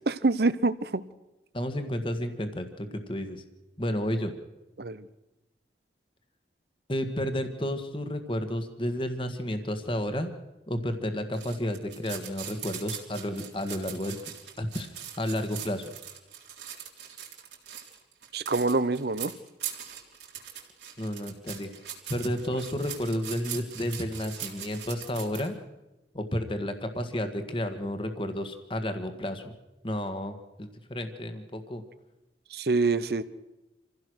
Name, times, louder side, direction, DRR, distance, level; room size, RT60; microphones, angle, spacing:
voice 1, 0.1-1.0 4.8-5.0 18.3-19.3 32.5-33.2, right 3 dB, 65° right, 15 dB, 0.9 m, -26 dB
voice 2, 1.5-3.4 3.8-4.3 6.9-10.3 10.7-14.3 14.6-14.9 15.2-15.9 21.0-25.5 26.1-29.5 29.8-31.8, equal, 30° left, 7 dB, 1.7 m, -31 dB
sound 1, 11.3-25.5, right 10 dB, 80° right, 3.8 m, -41 dB
27.0 x 16.0 x 6.4 m, 1.0 s
head